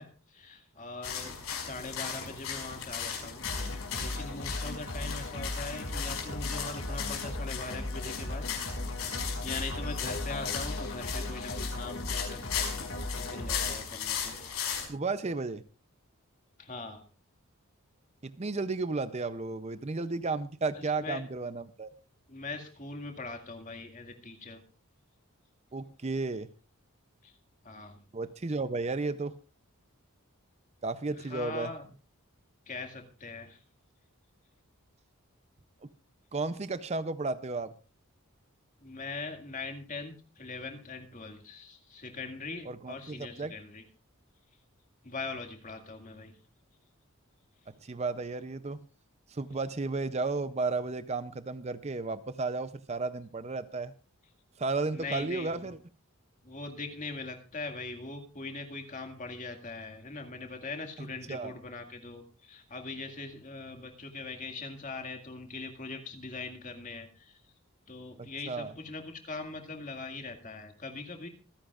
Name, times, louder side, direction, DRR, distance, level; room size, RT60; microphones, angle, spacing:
voice 1, 0.0-3.4 4.0-8.5 9.4-12.5 13.1-14.4 16.6-17.0 20.7-21.2 22.3-24.6 27.2-27.3 27.6-28.0 31.1-31.9 32.7-33.6 38.8-43.8 45.0-46.3 54.9-55.7 56.4-67.4 67.9-71.3, left 3 dB, 35° left, 5 dB, 2.0 m, -41 dB
sound 1, 1.0-14.9, left 7 dB, 80° left, 5.3 m, -37 dB
sound 2, 3.4-13.8, left 1 dB, 55° left, 2.3 m, -37 dB
voice 2, 14.9-15.6 18.2-21.9 25.7-26.5 28.1-29.4 30.8-31.7 35.8-35.9 36.3-37.7 42.7-43.5 47.8-48.8 49.3-53.9 54.6-55.8 61.0-61.5 68.2-68.7, right 3 dB, 30° right, 13 dB, 0.5 m, -33 dB
26.5 x 10.0 x 2.4 m, 0.36 s
head